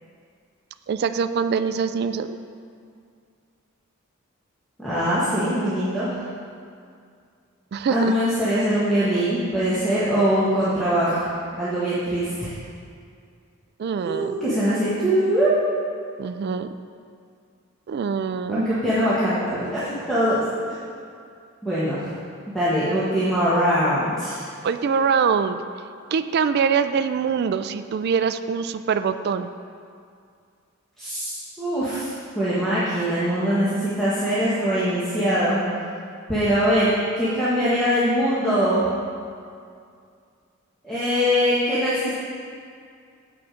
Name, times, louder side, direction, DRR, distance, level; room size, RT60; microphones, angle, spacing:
voice 1, 0.9-2.4 7.7-8.1 13.8-14.3 16.2-16.7 17.9-18.8 24.6-25.6 26.1-29.5, right 6 dB, 50° right, 11 dB, 0.3 m, -24 dB
voice 2, 4.8-6.2 7.9-11.3 11.6-12.5 14.0-15.5 18.5-20.4 20.7-20.8 21.6-22.1 22.5-24.4 31.0-35.6 36.3-38.9 40.8-42.1, equal, ahead, -11 dB, 1.2 m, -22 dB
7.7 x 5.9 x 5.0 m, 2.3 s
head